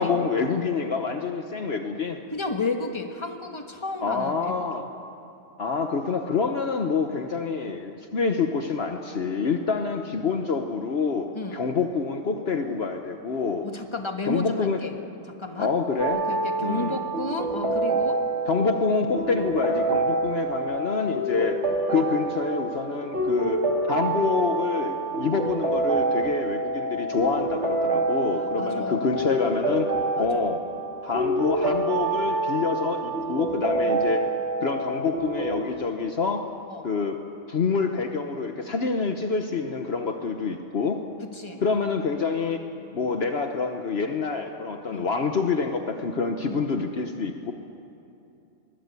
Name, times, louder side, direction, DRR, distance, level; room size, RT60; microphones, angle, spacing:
voice 1, 0.0-2.2 4.0-4.8 5.6-11.3 11.5-13.7 14.2-14.8 15.6-16.2 16.6-17.0 18.5-21.6 21.9-23.6 23.9-29.9 30.2-30.6 31.0-34.2 34.6-36.4 36.8-37.2 37.5-41.0 41.6-42.6 42.9-47.5, left 4 dB, 55° left, 5 dB, 1.3 m, -27 dB
voice 2, 2.3-4.5 11.3-11.6 13.6-14.9 15.3-15.7 16.3-18.2 28.3-29.1 30.2-30.5 33.8-33.9 36.7-36.9 41.2-41.6 44.9-45.1 46.5-46.6, left 3 dB, 25° left, 4 dB, 1.7 m, -32 dB
sound 1, 16.0-35.6, right 2 dB, 65° right, 2.6 m, -27 dB
23.0 x 21.0 x 8.3 m, 2.7 s
omnidirectional pair, 1.3 m